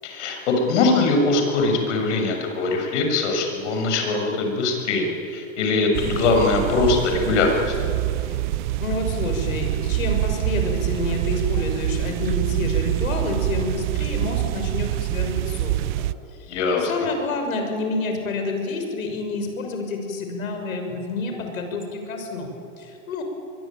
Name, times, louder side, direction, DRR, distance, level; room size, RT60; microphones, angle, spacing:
voice 1, 0.0-7.7 16.5-16.9, left 3 dB, 60° left, 3 dB, 7.0 m, -22 dB
sound 1, 5.9-16.1, right 16 dB, 35° right, 0.5 m, -25 dB
voice 2, 8.8-16.1 16.3-23.2, left 3 dB, 85° left, 4 dB, 6.7 m, -29 dB
23.5 x 23.5 x 9.1 m, 2.6 s
hypercardioid pair, 145°, 40 cm